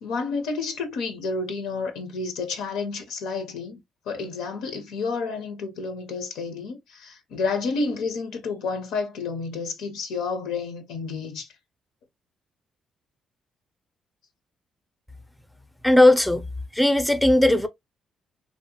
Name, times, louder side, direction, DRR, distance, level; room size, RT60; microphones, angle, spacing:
voice 1, 0.0-3.8 4.1-11.5, left 4 dB, 90° left, 0.5 m, -30 dB
voice 2, 15.8-16.5 16.7-17.7, left 1 dB, 5° left, 0.4 m, -17 dB
2.6 x 2.0 x 2.8 m
cardioid pair, 90°, 0 cm